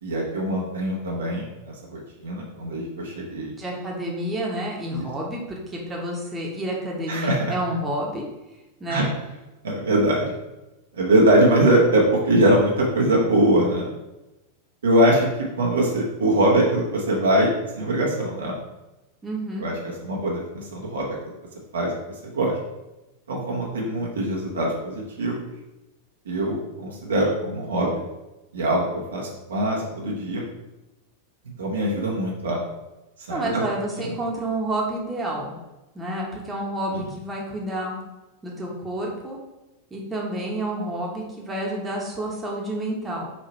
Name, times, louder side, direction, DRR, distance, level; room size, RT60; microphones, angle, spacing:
voice 1, 0.0-3.5 4.9-5.1 7.1-7.5 8.9-9.0 9.6-10.3 10.9-13.9 14.8-15.3 15.6-17.5 17.8-18.6 19.6-21.1 21.7-21.9 22.3-22.6 23.3-25.5 26.3-28.0 28.5-30.4 31.6-32.6 33.3-33.6 34.0-34.1 36.9-37.1, right 1 dB, 65° right, -2 dB, 1.0 m, -22 dB
voice 2, 3.6-8.3 8.8-9.1 19.2-19.7 33.3-35.6 35.9-38.0 38.4-39.4 39.9-43.3, right 1 dB, 15° right, -3 dB, 1.0 m, -29 dB
4.2 x 2.9 x 4.3 m, 1.0 s
figure-of-eight pair, 90°, 0 cm